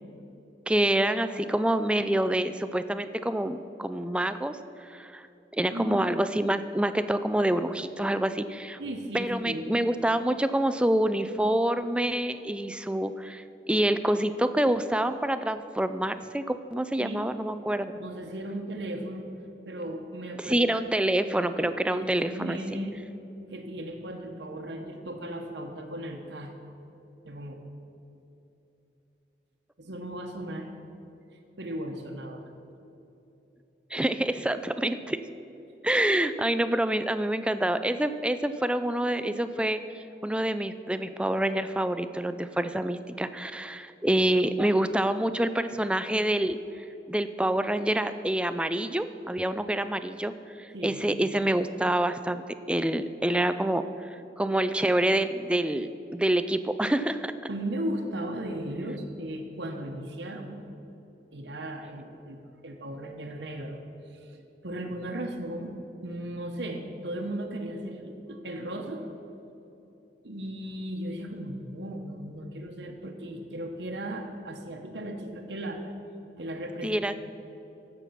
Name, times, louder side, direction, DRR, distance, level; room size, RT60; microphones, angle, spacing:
voice 1, 0.7-5.3 5.5-8.8 9.1-17.9 20.4-22.8 33.9-35.3 35.8-46.6 47.1-53.9 54.4-57.3 76.8-77.2, right 1 dB, 5° right, 11 dB, 0.3 m, -27 dB
voice 2, 5.7-6.1 8.8-9.8 17.0-17.4 17.9-19.3 19.6-20.7 21.1-21.2 21.6-23.0 23.5-26.7 27.2-27.6 29.8-30.7 31.6-32.4 50.7-51.1 57.5-60.6 61.3-62.4 62.6-63.8 64.3-65.7 66.0-69.1 70.2-75.8 76.4-77.2, right 1 dB, 80° right, 3 dB, 1.1 m, -36 dB
15.5 x 6.8 x 5.8 m, 2.9 s
head